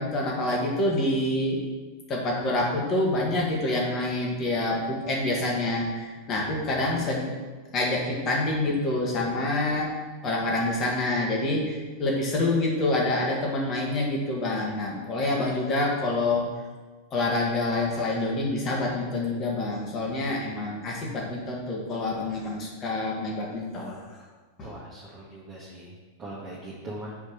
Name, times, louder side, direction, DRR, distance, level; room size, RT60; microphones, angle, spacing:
voice 1, 0.0-1.6 2.1-7.3 7.7-9.9 10.2-16.5 17.1-24.1 24.6-24.7, left 2 dB, 30° left, -2 dB, 1.9 m, -27 dB
voice 2, 24.6-25.9 26.2-27.1, right 1 dB, 20° right, -8 dB, 1.7 m, -40 dB
5.2 x 5.0 x 6.5 m, 1.3 s
figure-of-eight pair, 90°, 0 cm